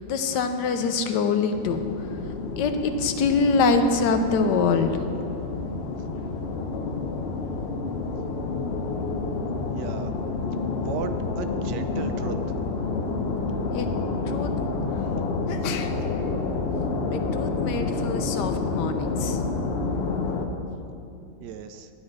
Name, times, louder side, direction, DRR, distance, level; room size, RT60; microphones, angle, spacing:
voice 1, 0.0-1.8 2.6-5.1 13.7-13.9 14.3-14.7 15.5-16.4 17.1-19.4, left 4 dB, 85° left, 7 dB, 1.3 m, -25 dB
sound 1, 1.5-20.5, left 4 dB, 55° left, 0.7 m, -29 dB
voice 2, 9.7-10.1 10.8-12.4 21.4-21.9, right 8 dB, 80° right, 9 dB, 1.2 m, -35 dB
10.5 x 9.0 x 3.9 m, 2.6 s
omnidirectional pair, 1.8 m